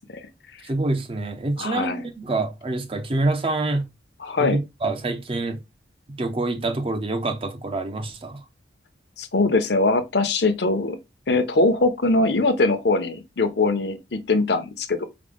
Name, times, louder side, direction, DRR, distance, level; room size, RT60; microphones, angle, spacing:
voice 1, 0.6-3.9 4.4-5.6 6.2-8.4, right 2 dB, 30° right, 0.5 m, -26 dB
voice 2, 1.6-2.0 4.2-4.6 9.2-11.0 11.3-15.0, left 3 dB, 70° left, 0.7 m, -22 dB
4.9 x 2.1 x 3.5 m
head